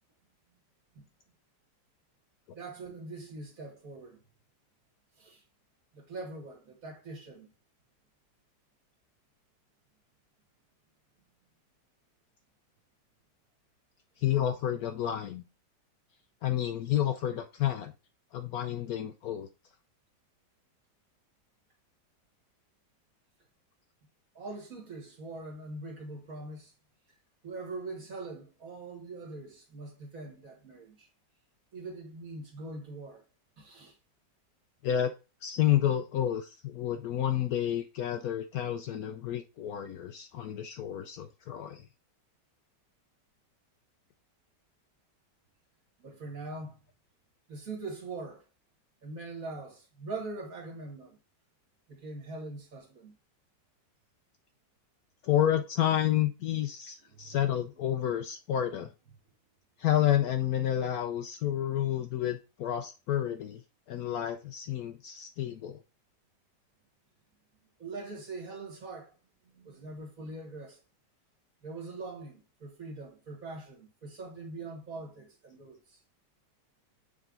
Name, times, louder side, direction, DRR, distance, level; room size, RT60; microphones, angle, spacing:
voice 1, 2.5-4.2 5.2-5.4 5.9-7.5 24.4-26.7 27.4-31.1 31.7-33.2 33.6-34.0 46.0-46.8 47.5-48.4 49.0-51.2 51.9-53.1 57.1-57.4 67.8-69.1 69.5-70.8 71.6-76.0, right 3 dB, 50° right, 2.0 m, -42 dB
voice 2, 14.2-15.4 16.4-17.9 18.3-19.5 34.8-35.1 35.4-41.9 55.2-58.9 59.8-63.6 63.9-65.8, left 11 dB, 70° left, 0.9 m, -30 dB
6.6 x 3.6 x 3.9 m
omnidirectional pair, 1.9 m